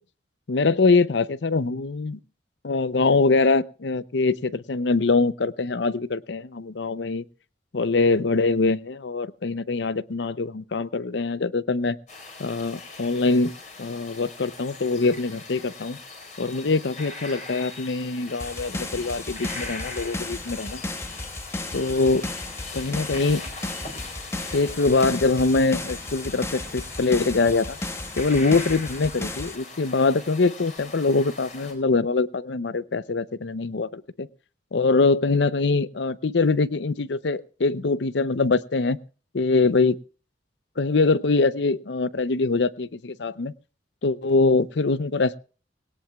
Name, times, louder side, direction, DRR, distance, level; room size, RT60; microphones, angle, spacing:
voice 1, 0.5-2.2 2.6-7.2 7.7-12.0 12.4-13.5 13.8-16.0 16.4-20.8 21.7-22.3 22.7-23.4 24.5-27.8 28.2-34.3 34.7-39.0 39.3-40.0 40.8-43.5 44.0-45.4, left 3 dB, 75° left, 17 dB, 0.6 m, -23 dB
sound 1, 12.1-31.7, left 3 dB, 40° left, 4.6 m, -41 dB
sound 2, 18.4-29.6, left 2 dB, 15° left, 0.8 m, -34 dB
20.5 x 18.0 x 2.3 m, 0.36 s
head